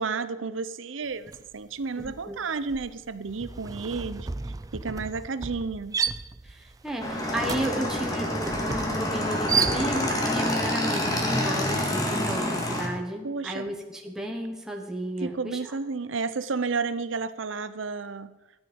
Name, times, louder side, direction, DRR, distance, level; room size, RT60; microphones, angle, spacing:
voice 1, 0.0-4.3 4.7-6.0 13.2-13.7 15.2-18.3, right 4 dB, 85° right, 14 dB, 0.7 m, -31 dB
sound 1, 1.3-1.5 1.8-10.3, right 5 dB, 20° right, 0.3 m, -33 dB
voice 2, 6.4-15.7, equal, 5° right, 1 dB, 1.3 m, -33 dB
Motorcycle / Engine, 7.0-12.9, left 1 dB, 20° left, 1.9 m, -27 dB
13.5 x 9.1 x 5.3 m, 1.1 s
head